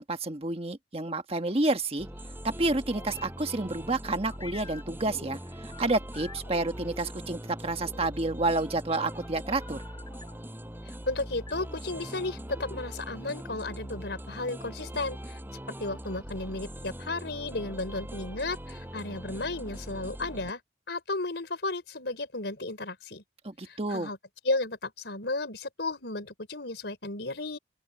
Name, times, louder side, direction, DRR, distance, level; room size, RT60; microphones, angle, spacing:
voice 1, 0.0-2.1 2.4-9.8 23.4-24.1, right 2 dB, 35° right, 1.5 m, -29 dB
sound 1, 2.0-20.5, equal, 10° right, 6.1 m, -41 dB
sound 2, 2.9-3.3 3.9-7.1 7.6-8.1 9.0-10.4 11.5-12.8, left 2 dB, 25° left, 6.3 m, -48 dB
voice 2, 10.9-15.4 15.8-20.6 20.9-23.2 23.6-24.2 24.4-27.6, left 2 dB, 75° left, 4.3 m, -34 dB
open air
head